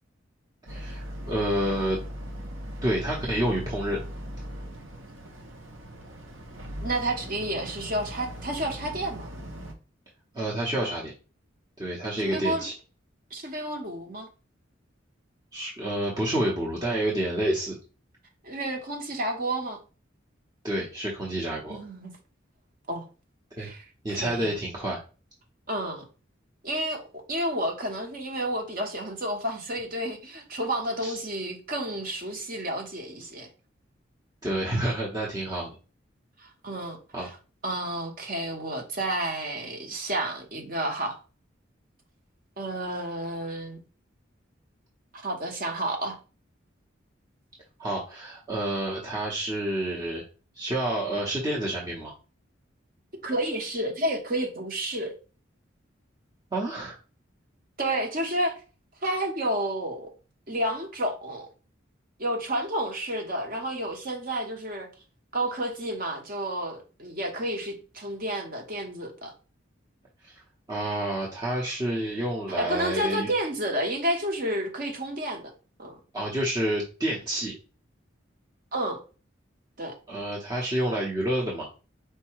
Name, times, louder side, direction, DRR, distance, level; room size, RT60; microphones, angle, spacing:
voice 1, 0.7-2.0 2.8-4.0 10.3-11.1 11.8-12.7 15.5-17.8 20.6-21.8 23.6-23.7 24.0-25.0 31.0-31.2 34.4-35.7 37.1-37.3 47.8-50.2 50.5-52.1 56.5-57.0 70.2-70.4 70.7-73.3 76.1-77.5 80.1-81.7, right 1 dB, 20° right, 0.8 m, -29 dB
Boat Water vehicle, 0.7-9.7, equal, 85° right, 0.9 m, -39 dB
voice 2, 6.8-9.3 12.2-12.6 13.3-14.3 18.4-19.8 21.7-22.1 22.9-23.0 23.6-24.5 25.7-26.1 26.6-27.0 27.3-33.5 36.4-37.3 37.6-41.2 42.6-43.8 45.1-46.2 53.2-55.1 57.8-58.5 59.0-60.1 60.5-61.5 62.2-64.9 65.3-69.3 72.6-75.5 75.8-76.0 78.7-79.0 79.8-79.9, right 1 dB, 45° right, 1.0 m, -30 dB
4.6 x 2.2 x 4.5 m
head